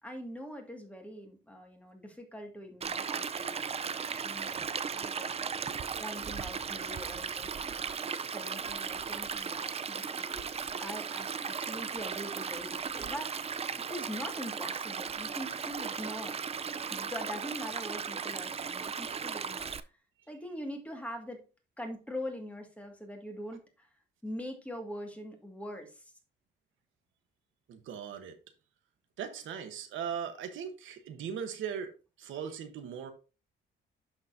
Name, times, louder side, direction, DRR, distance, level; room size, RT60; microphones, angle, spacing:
voice 1, 0.0-4.7 5.0-5.6 6.0-10.5 10.8-13.4 13.8-16.4 16.9-19.7 20.3-21.4 21.8-23.9 24.2-26.1, equal, 5° left, 3 dB, 1.9 m, -43 dB
Stream, 2.8-19.8, right 6 dB, 30° right, 0.5 m, -36 dB
voice 2, 27.7-28.4 29.2-31.9 32.2-33.1, right 7 dB, 80° right, 7 dB, 1.1 m, -38 dB
11.5 x 4.0 x 2.6 m, 0.32 s
cardioid pair, 90°, 20 cm